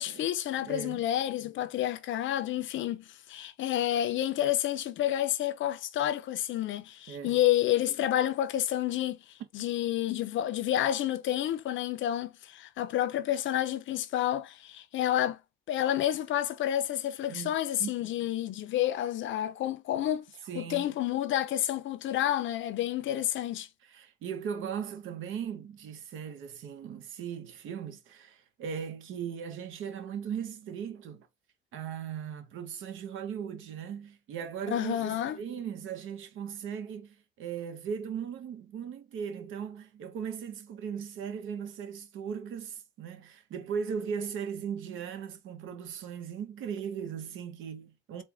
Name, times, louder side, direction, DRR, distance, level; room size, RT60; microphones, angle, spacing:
voice 1, 0.0-9.2 9.5-15.4 15.7-20.2 20.6-23.7 34.7-35.4, left 12 dB, 75° left, 0.6 m, -29 dB
voice 2, 0.6-1.0 7.1-7.4 17.3-17.9 20.5-20.9 23.8-31.3 31.7-48.2, right 7 dB, 85° right, 1.0 m, -38 dB
4.4 x 2.3 x 3.5 m
cardioid pair, 90°, 20 cm